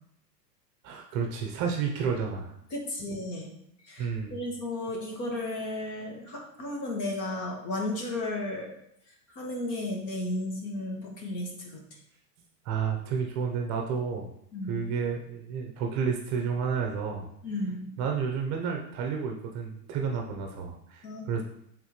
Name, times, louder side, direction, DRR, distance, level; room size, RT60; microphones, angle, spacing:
voice 1, 0.8-2.5 4.0-4.4 12.6-14.3 14.7-17.3 18.0-21.4, right 6 dB, 35° right, 3 dB, 0.8 m, -31 dB
voice 2, 2.7-3.5 3.8-8.7 9.1-11.8 14.5-14.8 17.4-17.8 21.0-21.3, left 1 dB, 35° left, 0 dB, 1.7 m, -34 dB
7.8 x 3.8 x 3.2 m, 0.73 s
supercardioid pair, 135°, 50 cm